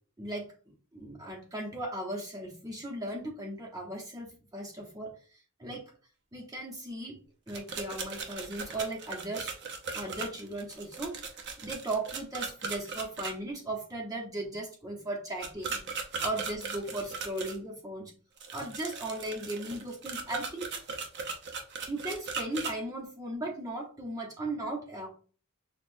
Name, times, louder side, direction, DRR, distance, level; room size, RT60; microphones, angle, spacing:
voice 1, 0.2-0.5 0.9-5.1 5.6-5.9 6.3-7.2 7.5-9.5 9.9-11.2 11.6-15.8 16.2-18.1 18.5-20.7 21.9-25.1, right 1 dB, 15° right, -1 dB, 0.9 m, -37 dB
sound 1, 7.5-13.3 15.4-17.6 18.4-22.7, right 5 dB, 55° right, 0.7 m, -38 dB
6.3 x 2.4 x 2.6 m, 0.39 s
head